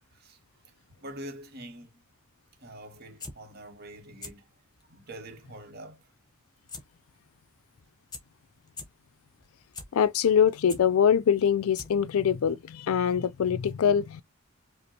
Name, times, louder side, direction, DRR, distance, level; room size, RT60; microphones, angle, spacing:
voice 1, 1.0-2.0 2.6-4.5 4.9-6.1, right 1 dB, 50° right, 1.0 m, -45 dB
sound 1, 3.0-3.3 4.0-4.3 4.7-4.8 6.7-6.8 7.1-7.2 7.8-7.9 8.1-8.2 8.7-8.8 9.4-9.9 10.3-10.8 11.4-11.5 11.8-12.1 12.4-12.5, left 3 dB, 20° left, 0.9 m, -40 dB
voice 2, 9.9-14.2, left 8 dB, 85° left, 0.4 m, -23 dB
5.0 x 2.0 x 2.8 m
head